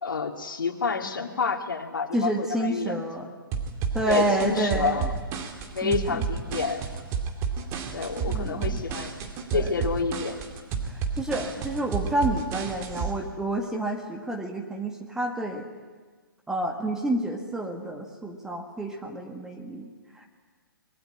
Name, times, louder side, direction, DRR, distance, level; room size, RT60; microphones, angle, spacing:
voice 1, 0.0-3.0 4.1-5.1 5.7-6.9 7.9-9.2 9.5-10.4, left 5 dB, 65° left, 4 dB, 2.6 m, -29 dB
voice 2, 2.1-3.3 3.9-5.1 5.8-6.2 8.3-8.8 9.5-9.8 10.8-15.7 16.5-20.3, right 1 dB, 5° right, 2 dB, 1.9 m, -29 dB
sound 1, 3.5-13.1, right 6 dB, 25° right, 2.4 m, -31 dB
25.5 x 20.5 x 10.0 m, 1.4 s
figure-of-eight pair, 130°, 12 cm